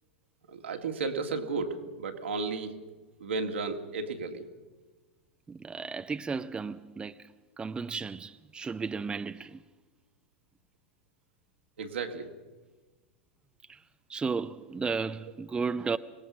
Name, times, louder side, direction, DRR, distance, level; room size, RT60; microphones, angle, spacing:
voice 1, 0.5-2.7 3.2-4.4 11.8-12.3, right 4 dB, 75° right, 2.3 m, -33 dB
voice 2, 5.5-7.3 7.6-9.6 13.7-13.8 14.1-16.0, right 5 dB, 15° right, 0.7 m, -34 dB
25.5 x 19.0 x 6.3 m
figure-of-eight pair, 95°, 6 cm